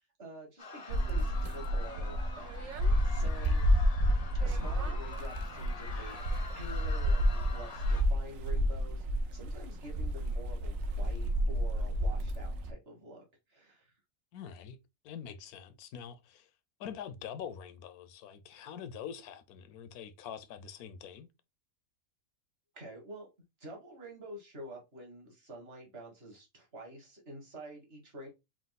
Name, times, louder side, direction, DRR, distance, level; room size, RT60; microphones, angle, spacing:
voice 1, 0.2-3.6 4.4-9.0 9.3-13.2 13.5-13.9 22.7-23.3 23.6-28.3, right 1 dB, 45° right, 1.8 m, -48 dB
sound 1, 0.6-8.0, left 4 dB, 50° left, 0.4 m, -46 dB
sound 2, 0.9-12.7, equal, 70° right, 1.0 m, -30 dB
voice 2, 14.3-14.8 15.0-16.5 16.8-21.3, left 8 dB, 90° left, 1.1 m, -45 dB
4.8 x 2.2 x 3.9 m
omnidirectional pair, 1.5 m